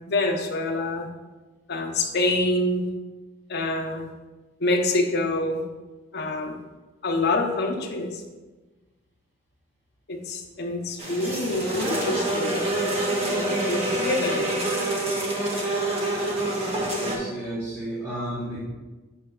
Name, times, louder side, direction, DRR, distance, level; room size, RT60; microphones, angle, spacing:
voice 1, 0.1-1.1 1.7-2.8 3.5-4.1 4.6-5.6 6.1-6.5 7.0-8.2 10.1-12.6 13.6-14.6, left 2 dB, 55° left, 3 dB, 0.8 m, -26 dB
sound 1, 11.0-17.2, right 1 dB, 30° right, 1.1 m, -26 dB
voice 2, 17.0-18.6, right 1 dB, 15° right, -10 dB, 1.3 m, -32 dB
7.5 x 5.6 x 2.4 m, 1.2 s
head